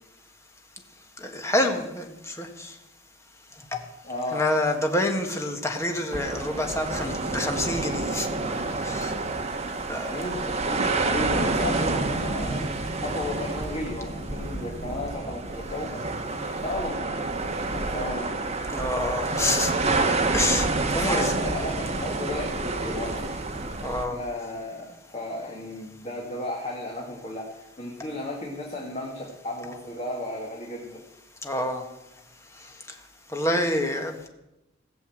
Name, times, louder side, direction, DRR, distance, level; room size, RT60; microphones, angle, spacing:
voice 1, 1.2-2.7 3.7-3.8 4.3-8.3 8.8-9.1 9.9-10.2 18.7-19.7 20.3-20.7 20.9-21.3 23.8-24.2 31.4-31.8 33.3-34.3, left 1 dB, 15° left, 3 dB, 1.5 m, -27 dB
voice 2, 4.0-4.4 10.1-16.3 16.6-17.2 17.5-18.5 21.0-23.3 24.1-31.0, left 1 dB, 35° left, -2 dB, 2.0 m, -34 dB
sound 1, 6.1-24.0, right 3 dB, 35° right, 1.3 m, -28 dB
16.0 x 7.0 x 7.8 m, 0.93 s
head